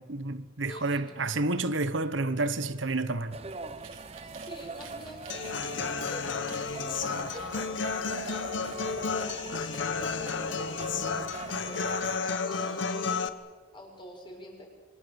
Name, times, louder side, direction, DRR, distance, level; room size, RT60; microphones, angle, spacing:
voice 1, 0.0-3.4, right 2 dB, 65° right, 1.2 m, -30 dB
voice 2, 0.6-1.0 4.2-5.4 6.1-13.2 13.7-14.7, left 1 dB, 25° left, 6.1 m, -47 dB
sound 1, 3.3-12.2, right 3 dB, 30° right, 0.9 m, -42 dB
sound 2, 3.4-9.0, right 8 dB, 90° right, 3.5 m, -53 dB
Human voice / Acoustic guitar, 5.3-13.3, left 5 dB, 65° left, 1.2 m, -32 dB
26.5 x 25.0 x 7.1 m
head